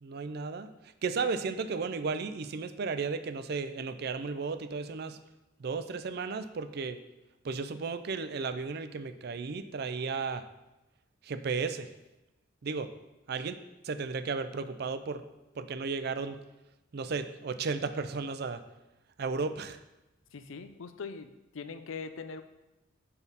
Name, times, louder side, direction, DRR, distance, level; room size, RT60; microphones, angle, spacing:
voice 1, 0.0-5.2 5.6-7.0 7.4-10.4 11.2-11.9 12.6-12.9 13.3-13.6 13.8-15.2 15.6-16.4 16.9-18.6 19.2-19.8, right 4 dB, 50° right, 11 dB, 0.4 m, -34 dB
voice 2, 20.3-21.3 21.5-22.4, left 5 dB, 80° left, 10 dB, 0.5 m, -41 dB
7.1 x 5.5 x 4.0 m, 0.98 s
head